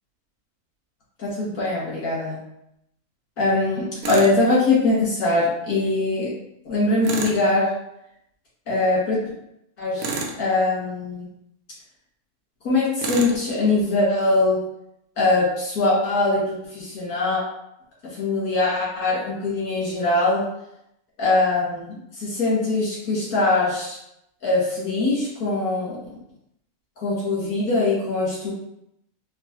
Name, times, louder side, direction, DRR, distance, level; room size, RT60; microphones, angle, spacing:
voice 1, 1.2-2.4 3.4-6.3 6.6-7.7 8.7-9.2 9.8-11.3 12.6-14.6 15.2-17.4 18.1-20.4 21.2-24.0 24.4-26.0 27.0-28.5, left 2 dB, 75° left, -8 dB, 2.2 m, -22 dB
Tools, 4.0-4.4 7.0-7.4 10.0-10.4 13.0-13.4, right 4 dB, 70° right, 1.0 m, -29 dB
4.5 x 2.4 x 2.9 m, 0.80 s
omnidirectional pair, 1.6 m